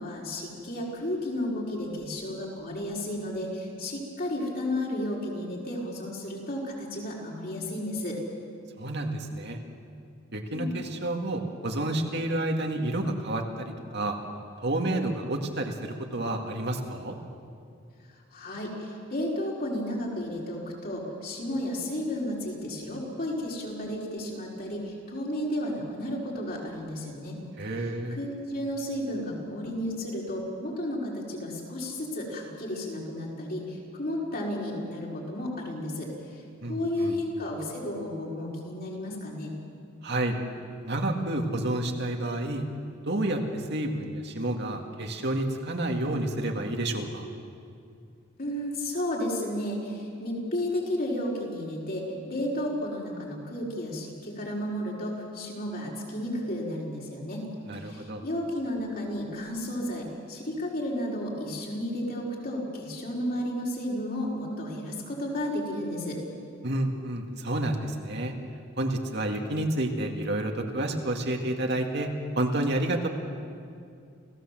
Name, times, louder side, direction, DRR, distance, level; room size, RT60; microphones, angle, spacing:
voice 1, 0.0-8.2 10.5-10.8 18.1-27.4 27.8-39.5 48.4-66.2, left 1 dB, 50° left, -3 dB, 5.1 m, -33 dB
voice 2, 8.8-9.6 10.3-14.2 14.6-17.2 27.6-28.2 36.6-37.2 40.0-40.4 40.8-42.6 43.1-47.3 57.7-58.2 66.6-68.3 68.8-73.1, right 1 dB, 60° right, 3 dB, 2.1 m, -30 dB
28.5 x 16.0 x 7.7 m, 2.3 s
head